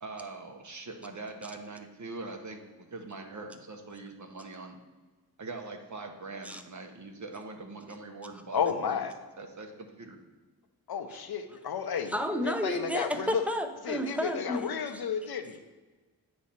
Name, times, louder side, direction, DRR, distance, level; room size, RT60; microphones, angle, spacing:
voice 1, 0.0-4.8 5.4-9.0 9.4-10.2, right 3 dB, 50° right, 4 dB, 0.8 m, -42 dB
voice 2, 8.5-9.1 10.9-12.1 12.4-13.4 13.8-15.6, left 7 dB, 75° left, 8 dB, 0.7 m, -32 dB
voice 3, 12.1-15.0, equal, 5° right, 5 dB, 0.5 m, -32 dB
8.4 x 3.2 x 5.6 m, 1.3 s
wide cardioid pair, 95°, 38 cm